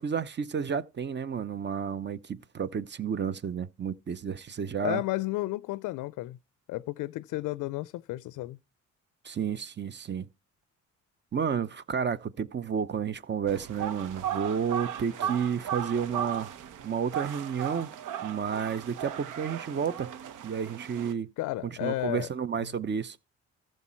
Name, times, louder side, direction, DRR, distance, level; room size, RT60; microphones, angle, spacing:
voice 1, 0.0-5.0 9.2-10.3 11.3-16.5 16.8-17.9 18.2-20.1 20.4-21.3 21.6-23.2, right 7 dB, 35° right, 0.8 m, -31 dB
voice 2, 4.8-6.4 6.7-8.6 15.2-15.3 21.4-22.3 22.6-22.7, left 18 dB, 85° left, 0.5 m, -32 dB
sound 1, 13.5-21.1, right 10 dB, 80° right, 1.0 m, -36 dB
14.0 x 6.5 x 4.4 m
cardioid pair, 90°, 30 cm